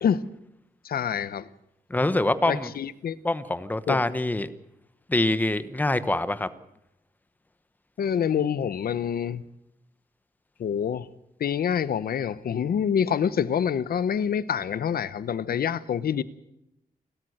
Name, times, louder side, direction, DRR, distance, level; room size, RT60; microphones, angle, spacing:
voice 1, 0.8-1.5 2.5-3.2 3.9-4.0 8.0-9.4 10.6-11.1 11.4-16.2, left 8 dB, 85° left, 1.0 m, -26 dB
voice 2, 1.9-2.7 3.2-4.5 5.1-6.5, left 2 dB, 10° left, 1.0 m, -25 dB
29.0 x 13.0 x 8.0 m
wide cardioid pair, 170°, 15 cm